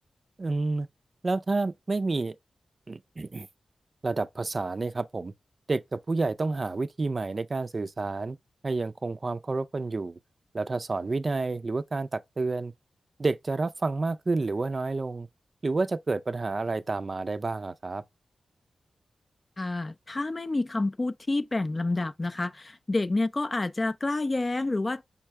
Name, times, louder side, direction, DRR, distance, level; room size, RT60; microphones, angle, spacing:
voice 1, 0.4-0.9 1.2-2.4 2.9-3.5 4.0-5.3 5.7-8.4 8.6-10.2 10.5-12.7 13.2-15.3 15.6-18.0, right 3 dB, 45° right, 0.4 m, -29 dB
voice 2, 19.6-25.0, left 2 dB, 35° left, 0.3 m, -28 dB
5.5 x 2.1 x 4.5 m
cardioid pair, 65°, 0 cm